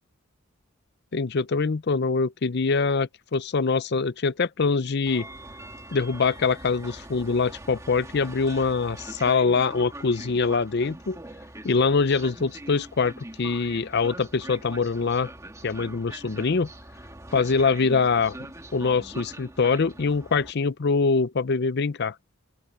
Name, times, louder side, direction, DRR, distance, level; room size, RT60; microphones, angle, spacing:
voice 1, 1.1-5.3 5.9-11.2 11.6-13.1 13.4-15.3 15.6-16.7 17.3-18.4 18.7-22.1, left 4 dB, 55° left, 0.6 m, -24 dB
Train, 5.1-20.5, right 1 dB, 15° right, 2.5 m, -42 dB
open air
head